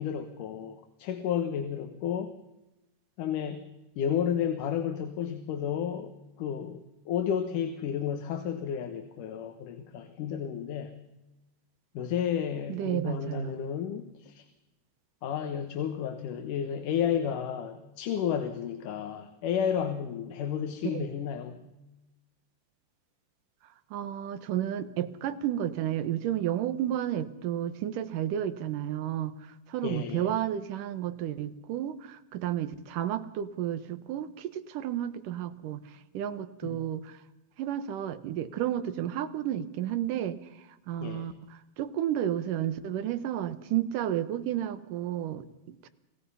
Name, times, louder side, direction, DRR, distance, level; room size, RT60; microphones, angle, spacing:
voice 1, 0.0-2.3 3.2-3.7 4.0-11.0 11.9-14.4 15.2-21.7 29.8-30.3 36.6-36.9 41.0-41.3, left 8 dB, 80° left, 7 dB, 2.8 m, -32 dB
voice 2, 12.7-13.5 20.9-21.1 23.9-29.3 29.7-35.8 36.1-37.2 37.6-40.4 40.9-41.3 41.8-45.9, right 11 dB, 85° right, 12 dB, 2.7 m, -32 dB
28.5 x 16.5 x 5.6 m, 0.97 s
omnidirectional pair, 3.7 m